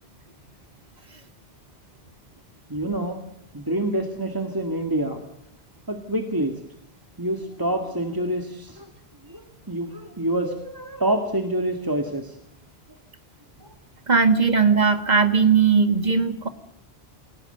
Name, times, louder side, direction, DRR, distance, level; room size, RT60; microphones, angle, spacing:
voice 1, 2.7-3.2 3.5-5.2 5.9-6.5 7.2-8.9 9.3-12.3, right 1 dB, 20° right, 4 dB, 1.9 m, -27 dB
voice 2, 14.1-16.5, right 5 dB, 40° right, 9 dB, 2.0 m, -18 dB
28.0 x 17.5 x 7.9 m, 0.75 s
omnidirectional pair, 1.1 m